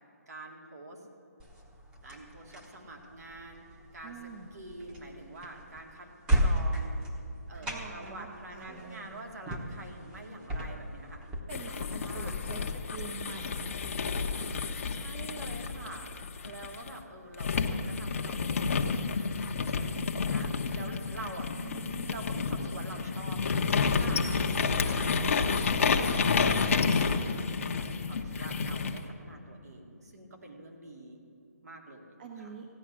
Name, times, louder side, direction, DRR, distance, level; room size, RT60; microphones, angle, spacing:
voice 1, 0.3-1.0 2.0-3.6 3.9-6.1 6.3-7.0 7.5-11.3 11.7-12.4 14.9-16.1 16.4-21.5 22.1-24.2 24.7-31.2 31.6-32.5, right 2 dB, 70° right, 1 dB, 2.4 m, -46 dB
sound 1, 1.4-11.4, right 1 dB, 10° right, 1.1 m, -35 dB
voice 2, 4.0-4.5 7.6-9.3 11.5-12.6 12.9-14.7 21.6-22.3 28.1-28.3 32.2-32.7, right 4 dB, 35° right, 2 dB, 1.1 m, -45 dB
sound 2, 11.5-16.9 17.4-29.0, left 5 dB, 50° left, 0.9 m, -30 dB
15.5 x 9.9 x 6.3 m, 2.6 s
hypercardioid pair, 155°, 9 cm